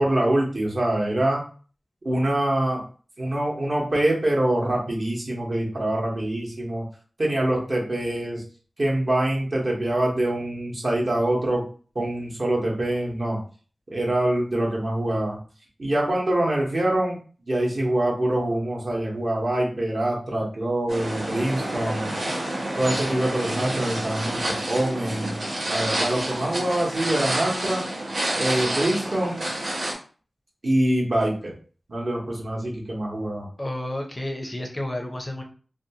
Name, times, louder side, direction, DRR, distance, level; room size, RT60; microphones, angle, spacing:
voice 1, 0.0-1.4 2.0-2.8 3.2-6.8 7.2-8.4 8.8-11.6 11.9-13.4 13.9-15.4 15.8-17.2 17.5-22.1 22.8-25.4 25.7-27.8 28.4-29.4 30.6-31.5 31.9-33.5, right 1 dB, 50° right, -2 dB, 0.9 m, -24 dB
sound 1, 20.9-29.9, right 1 dB, 80° right, 0.8 m, -28 dB
voice 2, 33.6-35.4, left 1 dB, 25° left, 2 dB, 0.5 m, -31 dB
2.6 x 2.2 x 2.8 m, 0.40 s
wide cardioid pair, 95°, 0 cm